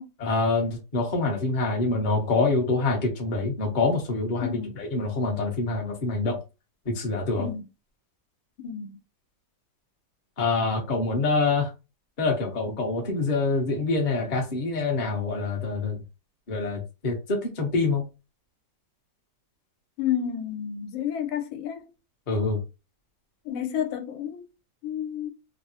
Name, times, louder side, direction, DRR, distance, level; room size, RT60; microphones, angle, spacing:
voice 1, 0.2-6.4 6.8-7.5 10.4-11.7 12.2-16.0 16.5-18.0 22.3-22.6, left 3 dB, 45° left, 0.6 m, -26 dB
voice 2, 4.4-4.7 7.4-7.6 8.6-9.0 20.0-21.9 23.4-24.4 24.8-25.3, left 9 dB, 90° left, 1.4 m, -30 dB
3.4 x 2.0 x 2.7 m
omnidirectional pair, 2.1 m